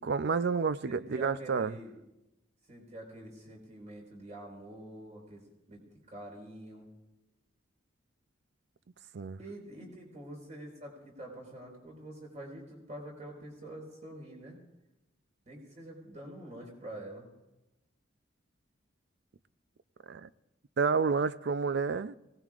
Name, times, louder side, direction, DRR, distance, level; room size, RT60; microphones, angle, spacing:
voice 1, 0.0-1.7 9.1-9.4 20.1-20.3 20.8-22.2, right 5 dB, 60° right, 0.5 m, -29 dB
voice 2, 0.9-2.0 2.7-5.4 5.7-5.8 6.1-6.9 9.4-14.6 15.5-17.3, right 1 dB, 40° right, 4.6 m, -46 dB
23.5 x 18.5 x 2.5 m
head